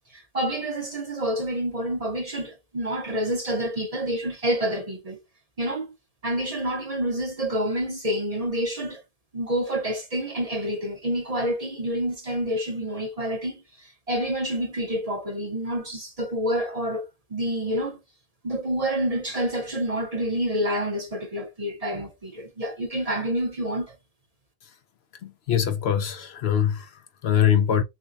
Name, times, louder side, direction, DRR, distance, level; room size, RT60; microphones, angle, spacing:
voice 1, 0.1-5.2 5.6-5.9 6.2-9.0 9.3-18.0 18.4-23.9, right 1 dB, 35° right, 0.8 m, -28 dB
voice 2, 25.2-27.8, left 9 dB, 65° left, 0.8 m, -23 dB
6.0 x 2.2 x 2.6 m
omnidirectional pair, 1.2 m